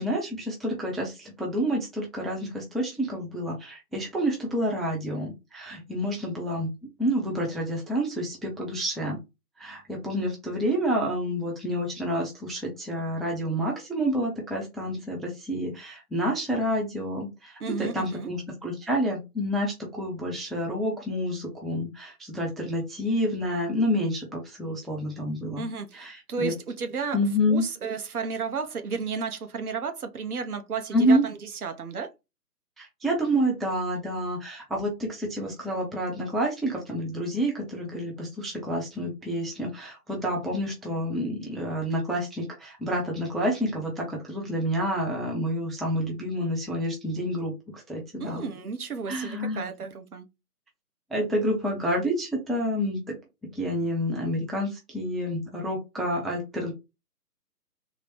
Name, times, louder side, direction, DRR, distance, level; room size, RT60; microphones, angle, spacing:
voice 1, 0.0-6.7 7.0-9.2 9.6-25.6 25.9-26.5 27.1-27.6 30.9-31.2 32.8-48.5 49.1-49.6 51.1-53.2 53.5-56.7, equal, ahead, 0.4 m, -28 dB
voice 2, 17.6-18.3 25.6-27.2 27.5-32.1 48.2-50.3, right 5 dB, 65° right, 0.8 m, -33 dB
3.9 x 2.0 x 2.9 m
hypercardioid pair, 175°, 47 cm